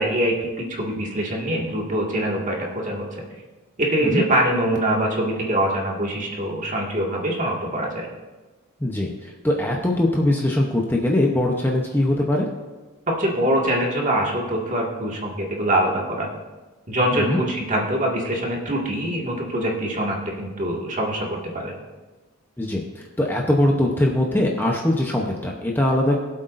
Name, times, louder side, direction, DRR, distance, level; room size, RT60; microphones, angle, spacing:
voice 1, 0.0-3.4 3.8-8.1 13.1-16.3 16.9-21.7, right 1 dB, 35° right, -2 dB, 2.0 m, -24 dB
voice 2, 8.8-12.5 17.1-17.4 22.6-26.2, left 1 dB, 10° left, -1 dB, 0.8 m, -21 dB
21.5 x 7.9 x 2.6 m, 1.2 s
head